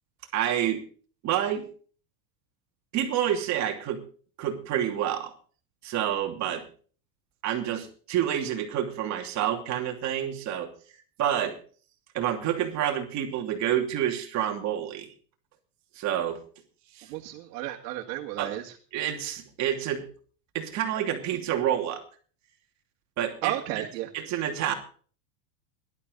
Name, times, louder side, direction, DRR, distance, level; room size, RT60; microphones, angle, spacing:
voice 1, 0.3-0.8 1.2-1.7 2.9-4.0 4.4-5.3 5.8-6.6 7.4-10.7 11.2-11.6 12.1-15.1 15.9-16.4 16.9-17.1 18.4-18.5 18.9-20.0 20.5-22.0 23.2-23.8 24.1-24.7, right 10 dB, 35° right, 4 dB, 2.8 m, -28 dB
voice 2, 17.1-18.8 23.4-24.1, right 14 dB, 65° right, 0 dB, 2.2 m, -33 dB
18.5 x 12.0 x 4.0 m, 0.41 s
supercardioid pair, 165°, 49 cm